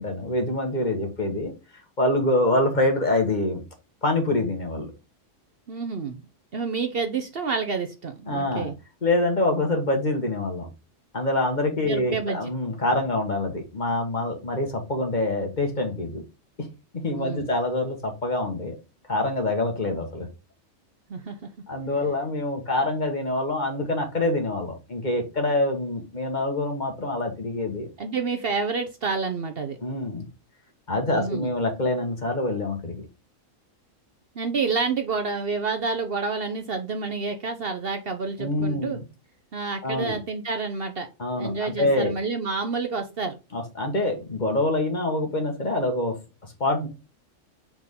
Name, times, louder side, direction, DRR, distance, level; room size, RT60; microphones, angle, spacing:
voice 1, 0.0-1.5 2.0-3.6 4.0-4.9 8.3-8.7 9.0-10.7 11.1-16.2 16.6-16.7 17.0-18.7 19.1-20.3 21.7-27.9 29.8-30.3 30.9-33.1 38.4-39.0 39.8-40.2 41.2-42.1 43.5-46.1 46.6-46.9, left 2 dB, 35° left, 3 dB, 1.7 m, -25 dB
voice 2, 5.7-6.3 6.5-8.7 11.9-12.4 17.1-17.5 21.1-21.5 28.0-29.8 31.1-31.5 34.3-39.0 39.5-41.1 41.4-43.4, right 4 dB, 50° right, 6 dB, 0.9 m, -29 dB
6.2 x 4.5 x 3.6 m, 0.28 s
omnidirectional pair, 1.3 m